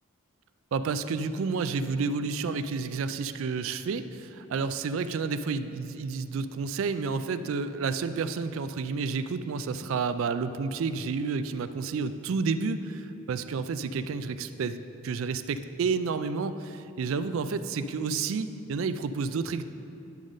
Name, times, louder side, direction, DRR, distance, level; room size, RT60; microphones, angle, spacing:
voice 1, 0.7-19.6, right 4 dB, 70° right, 11 dB, 0.3 m, -30 dB
10.5 x 6.2 x 3.9 m, 2.8 s
head